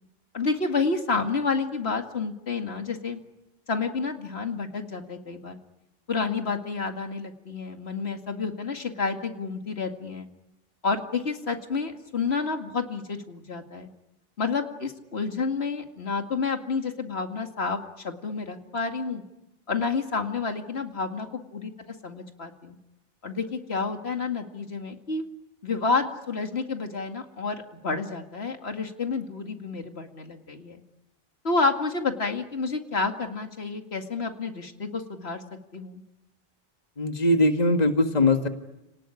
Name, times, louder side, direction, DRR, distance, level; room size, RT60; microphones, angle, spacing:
voice 1, 0.3-3.2 3.7-5.6 6.1-10.3 10.8-13.9 14.4-19.2 19.7-21.7 22.0-22.8 23.2-25.2 25.6-30.8 31.4-35.4 35.7-36.0, left 4 dB, 85° left, 5 dB, 2.4 m, -29 dB
voice 2, 37.0-38.5, left 2 dB, 40° left, 6 dB, 1.9 m, -21 dB
30.0 x 19.5 x 10.0 m, 0.95 s
omnidirectional pair, 1.0 m